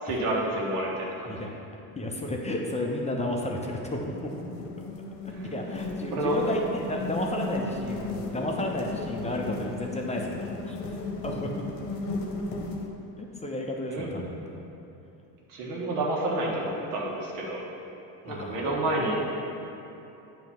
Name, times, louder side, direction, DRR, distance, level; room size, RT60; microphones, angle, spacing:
voice 1, 0.0-1.5 5.4-5.5 6.1-6.4 13.9-14.1 15.5-17.6 18.2-19.3, right 1 dB, 80° right, -3 dB, 1.6 m, -29 dB
voice 2, 2.0-4.1 5.2-11.0 11.2-11.7 13.2-14.6 18.2-18.7, left 1 dB, 15° left, 0 dB, 0.8 m, -32 dB
sound 1, 3.7-12.9, left 2 dB, 60° left, 1.1 m, -35 dB
8.7 x 3.2 x 5.8 m, 2.9 s
supercardioid pair, 85°, 44 cm